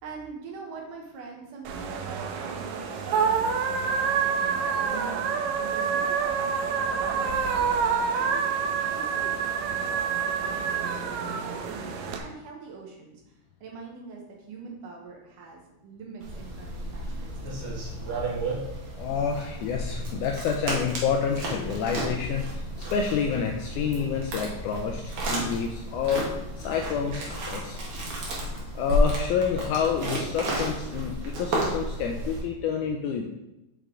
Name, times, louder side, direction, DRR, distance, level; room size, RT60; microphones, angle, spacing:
voice 1, 0.0-13.2 13.6-17.7, right 4 dB, 70° right, 0 dB, 2.5 m, -44 dB
sound 1, 1.6-12.2, right 6 dB, 90° right, 1.6 m, -27 dB
sound 2, 16.2-32.4, equal, 55° right, 1.8 m, -32 dB
voice 2, 19.0-26.3 26.6-27.8 28.7-33.2, left 6 dB, 85° left, 2 dB, 1.8 m, -28 dB
6.8 x 5.1 x 3.7 m, 0.95 s
omnidirectional pair, 4.0 m